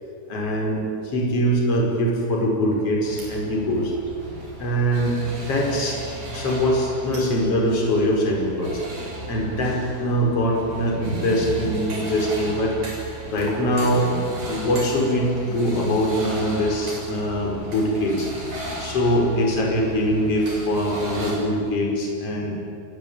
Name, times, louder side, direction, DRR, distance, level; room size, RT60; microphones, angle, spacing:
voice 1, 0.3-0.8 1.1-3.9 4.6-6.0 6.3-12.7 13.3-14.1 14.4-18.3 18.8-22.6, equal, 30° left, -1 dB, 5.8 m, -23 dB
sound 1, 3.0-21.3, right 2 dB, 40° right, 7.9 m, -35 dB
29.0 x 22.5 x 8.9 m, 2.4 s
omnidirectional pair, 5.5 m